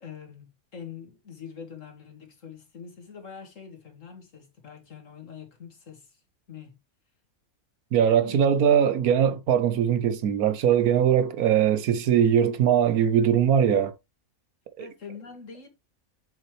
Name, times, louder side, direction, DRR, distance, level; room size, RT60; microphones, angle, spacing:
voice 1, 0.0-6.2 6.5-6.7 8.1-8.4 14.8-15.7, left 7 dB, 60° left, 2.3 m, -44 dB
voice 2, 7.9-13.9 14.8-14.9, right 9 dB, 75° right, 1.3 m, -21 dB
7.3 x 5.4 x 3.1 m
omnidirectional pair, 1.6 m